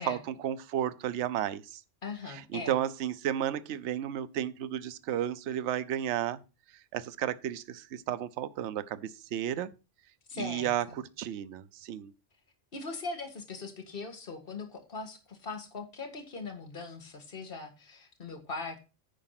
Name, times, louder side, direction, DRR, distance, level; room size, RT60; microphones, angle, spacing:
voice 1, 0.0-1.8 2.3-6.4 6.9-9.7 10.4-12.1, right 10 dB, 70° right, 0.9 m, -33 dB
voice 2, 2.0-2.8 10.3-11.0 12.7-18.8, left 3 dB, 50° left, 2.0 m, -40 dB
10.5 x 4.9 x 5.8 m
omnidirectional pair, 1.3 m